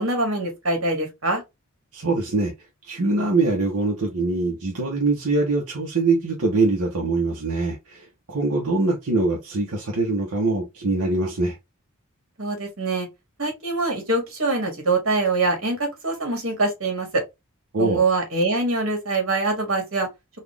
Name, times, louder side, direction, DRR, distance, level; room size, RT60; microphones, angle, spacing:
voice 1, 0.0-1.4 12.4-13.1 13.4-17.2 17.8-20.1, right 2 dB, 65° right, 1.9 m, -24 dB
voice 2, 1.9-2.5 2.8-11.6 17.7-18.0, right 3 dB, 90° right, 1.0 m, -23 dB
4.1 x 2.5 x 3.3 m
head